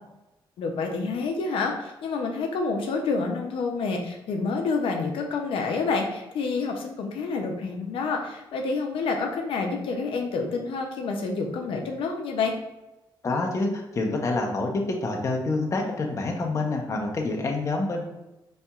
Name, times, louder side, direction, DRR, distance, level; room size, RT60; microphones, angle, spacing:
voice 1, 0.6-12.5, left 4 dB, 80° left, 2 dB, 0.5 m, -28 dB
voice 2, 13.2-18.0, left 2 dB, 35° left, 1 dB, 0.6 m, -27 dB
4.1 x 2.8 x 2.3 m, 0.98 s
cardioid pair, 115°, 9 cm